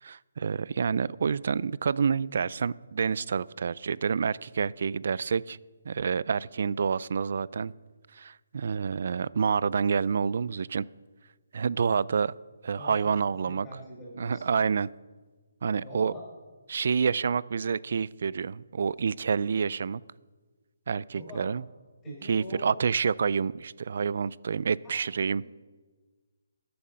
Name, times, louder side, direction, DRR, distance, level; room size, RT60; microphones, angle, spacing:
voice 1, 0.0-5.6 5.9-7.7 8.1-10.9 11.5-12.3 12.6-13.7 14.2-14.9 15.6-16.1 16.7-20.0 20.9-21.6 22.1-25.4, right 6 dB, 55° right, 22 dB, 0.3 m, -28 dB
voice 2, 12.7-13.1 13.4-14.4 15.8-16.2 21.1-21.5 22.0-22.8 24.8-24.9 25.2-25.5, left 1 dB, 10° left, -5 dB, 4.9 m, -44 dB
13.5 x 8.7 x 5.6 m, 1.4 s
hypercardioid pair, 160°, 0 cm